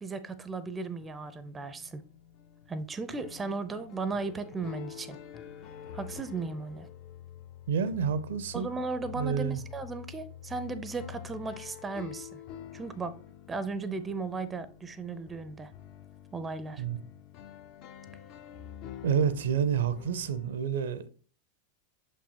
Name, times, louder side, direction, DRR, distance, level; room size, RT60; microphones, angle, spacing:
voice 1, 0.0-2.0 2.7-5.2 5.9-6.9 8.5-12.4 12.7-13.2 13.5-15.7 16.3-16.8, right 3 dB, 15° right, 0.5 m, -36 dB
sound 1, 0.9-20.5, left 9 dB, 40° left, 0.5 m, -47 dB
voice 2, 7.7-8.8 9.1-9.6 16.8-17.0 19.0-21.1, right 7 dB, 60° right, 0.6 m, -29 dB
6.5 x 5.3 x 2.8 m
figure-of-eight pair, 90°, 0 cm